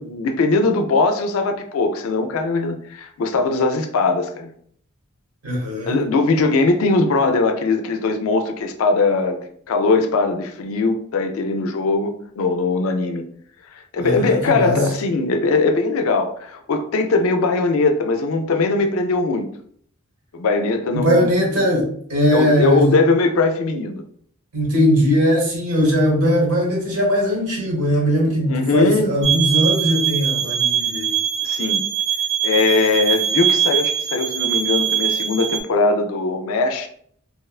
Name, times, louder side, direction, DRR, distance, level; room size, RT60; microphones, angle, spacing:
voice 1, 0.0-4.5 5.9-13.2 13.7-19.5 20.3-21.3 22.3-24.0 28.5-29.1 31.4-31.8 32.4-36.9, left 3 dB, 70° left, 0.3 m, -20 dB
voice 2, 5.4-6.0 14.0-14.8 20.9-22.9 24.5-31.2, equal, 85° right, 1.1 m, -19 dB
sound 1, 29.2-35.6, right 9 dB, 45° right, 0.5 m, -22 dB
2.9 x 2.1 x 2.3 m
head